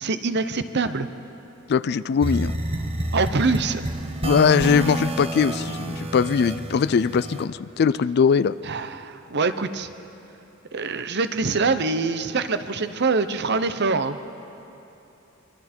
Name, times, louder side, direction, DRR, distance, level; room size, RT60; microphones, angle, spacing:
voice 1, 0.0-1.1 3.1-3.8 8.6-9.9 10.7-14.2, right 4 dB, 55° right, 11 dB, 0.9 m, -24 dB
voice 2, 1.7-2.5 4.2-8.5, left 6 dB, 50° left, 17 dB, 0.4 m, -21 dB
sound 1, 2.2-7.5, right 1 dB, 30° right, 1.2 m, -29 dB
25.5 x 24.5 x 4.4 m, 2.9 s
head